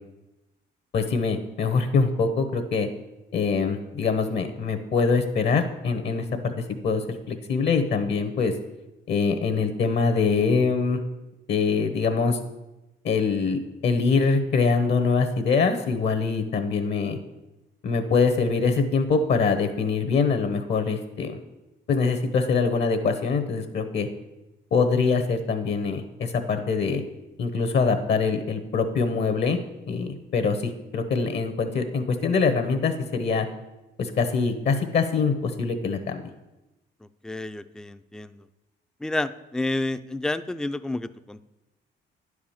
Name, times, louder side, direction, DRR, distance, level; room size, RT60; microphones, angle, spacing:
voice 1, 0.9-2.9 3.3-6.5 6.8-8.5 9.1-11.0 11.5-12.4 13.0-17.2 17.8-21.4 21.9-24.1 24.7-27.0 27.4-29.6 29.9-33.5 34.0-36.2, left 4 dB, 60° left, 7 dB, 1.1 m, -24 dB
voice 2, 37.2-38.4 39.0-41.4, left 2 dB, 5° left, 12 dB, 0.4 m, -30 dB
10.0 x 4.9 x 7.2 m, 0.99 s
cardioid pair, 90°, 20 cm